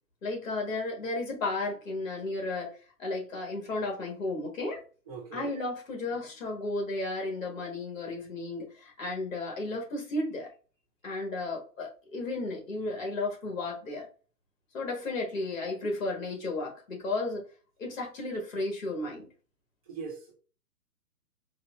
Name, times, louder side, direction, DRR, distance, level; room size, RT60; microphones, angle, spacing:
voice 1, 0.2-4.8 5.3-10.5 11.0-14.1 14.7-17.5 17.8-19.3, left 2 dB, 50° left, 1.5 m, -33 dB
voice 2, 5.1-5.6 19.9-20.3, right 5 dB, 20° right, 0.9 m, -40 dB
4.3 x 2.1 x 2.4 m
hypercardioid pair, 165°, 50 cm